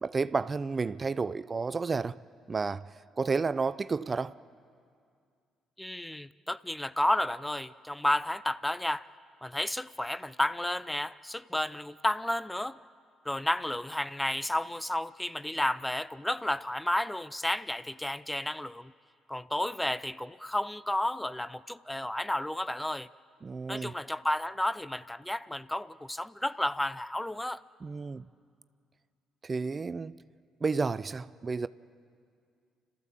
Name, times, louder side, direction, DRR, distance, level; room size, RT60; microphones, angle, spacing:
voice 1, 0.0-2.2 2.5-2.9 3.2-4.4 23.4-23.9 27.8-28.3 29.4-30.2 30.6-31.7, right 4 dB, 35° right, 0.5 m, -31 dB
voice 2, 5.8-9.1 9.4-12.8 13.3-18.9 19.3-23.1 23.7-27.6, left 1 dB, 10° left, 0.6 m, -32 dB
30.0 x 14.0 x 7.4 m
hypercardioid pair, 45°, 0 cm